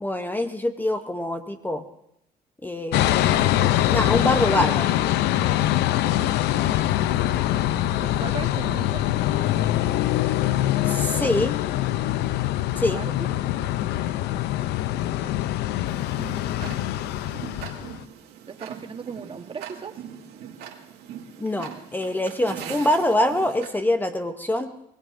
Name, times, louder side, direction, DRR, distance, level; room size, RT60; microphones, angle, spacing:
voice 1, 0.0-1.8 2.6-3.2 3.9-4.9 10.9-11.5 12.8-13.0 21.4-24.7, left 1 dB, 10° left, 8 dB, 0.7 m, -24 dB
sound 1, 2.9-18.0, left 13 dB, 85° left, 0.5 m, -23 dB
voice 2, 7.5-9.4 12.5-13.3 15.0-15.5 16.3-16.9 18.5-20.0, right 5 dB, 30° right, 6 dB, 1.2 m, -39 dB
Tick-tock, 15.9-23.7, right 8 dB, 80° right, 2.0 m, -41 dB
25.5 x 18.5 x 2.6 m, 0.81 s
cardioid pair, 110°, 17 cm